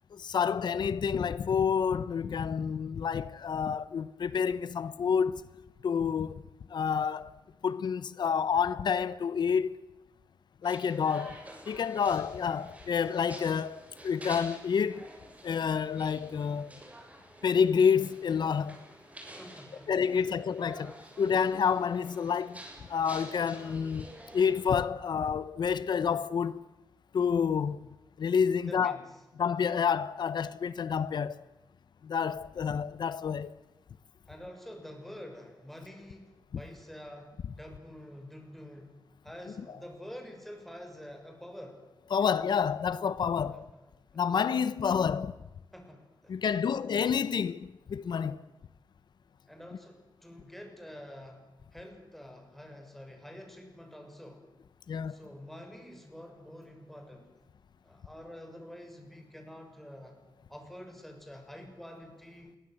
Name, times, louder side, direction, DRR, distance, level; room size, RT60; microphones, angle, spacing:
voice 1, 0.1-5.5 5.8-6.4 6.7-7.4 7.6-9.8 10.6-11.4 11.7-15.1 15.4-16.8 17.4-18.8 19.9-22.6 22.9-24.1 24.3-26.6 27.1-27.9 28.2-29.0 29.4-31.4 32.0-33.6 42.1-43.6 44.1-45.3 46.3-48.4 54.9-55.2, left 7 dB, 90° left, 1.0 m, -29 dB
sound 1, 10.6-24.7, right 1 dB, 20° right, 7.5 m, -49 dB
voice 2, 19.4-20.4 28.5-29.1 34.3-38.9 39.2-41.8 43.4-43.7 45.7-46.4 49.5-51.4 51.7-54.4 55.1-57.3 57.8-60.2 60.5-62.6, equal, 5° left, 6.9 m, -47 dB
28.0 x 23.0 x 7.9 m
wide cardioid pair, 125°, 7 cm